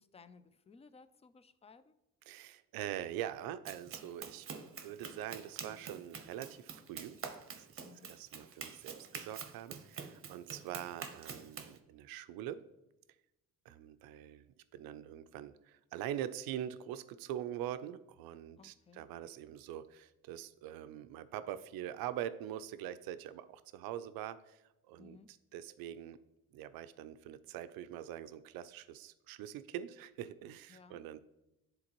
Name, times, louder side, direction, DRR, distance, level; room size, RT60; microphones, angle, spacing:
voice 1, 0.0-2.0 7.8-8.1 18.6-19.0 25.0-25.3 30.7-31.0, left 5 dB, 20° left, 14 dB, 0.3 m, -59 dB
voice 2, 2.3-4.5 4.8-7.2 7.6-7.7 8.0-12.6 13.7-14.4 14.7-26.2 26.5-31.2, right 11 dB, 85° right, 12 dB, 0.5 m, -43 dB
Run, 3.7-11.8, right 6 dB, 40° right, 0.7 m, -47 dB
9.6 x 3.9 x 2.9 m, 0.94 s
cardioid pair, 90°, 35 cm